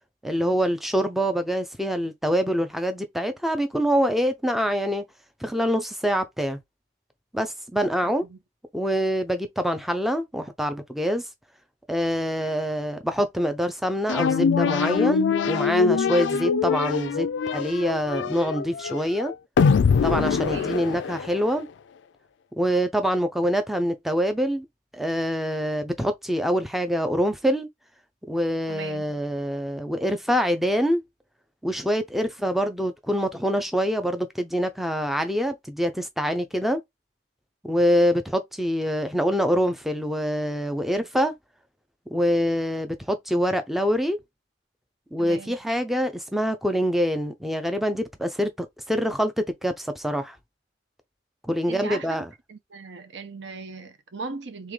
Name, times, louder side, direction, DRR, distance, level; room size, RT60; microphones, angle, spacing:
voice 1, 0.2-5.0 5.4-6.6 7.3-8.2 8.7-11.2 11.9-17.3 17.5-19.3 20.0-21.7 22.6-24.7 24.9-27.7 28.3-31.0 31.6-36.8 37.6-41.3 42.1-44.2 45.1-50.4 51.5-52.3, equal, ahead, 0.4 m, -25 dB
voice 2, 8.0-8.4 20.3-20.7 28.7-29.2 45.2-45.6 51.7-52.2 52.5-54.7, right 4 dB, 65° right, 0.8 m, -38 dB
sound 1, 14.1-21.6, left 5 dB, 65° left, 0.3 m, -23 dB
3.7 x 2.9 x 3.2 m
head